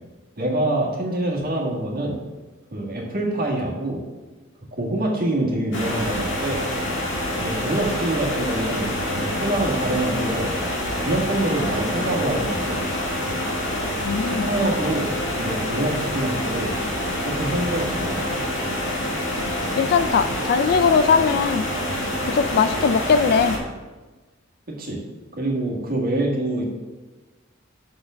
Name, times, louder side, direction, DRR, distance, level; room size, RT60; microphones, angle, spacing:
voice 1, 0.4-2.2 2.7-4.0 4.7-6.6 7.4-10.5 11.0-12.8 14.2-16.7 17.2-18.2 24.7-25.0 25.4-26.6, right 1 dB, 50° right, -2 dB, 1.7 m, -25 dB
sound 1, 5.7-23.6, left 1 dB, 65° left, 1.7 m, -26 dB
voice 2, 14.0-14.5 19.8-21.7 22.3-23.6, left 6 dB, 50° left, 12 dB, 0.3 m, -20 dB
7.0 x 4.6 x 6.2 m, 1.2 s
head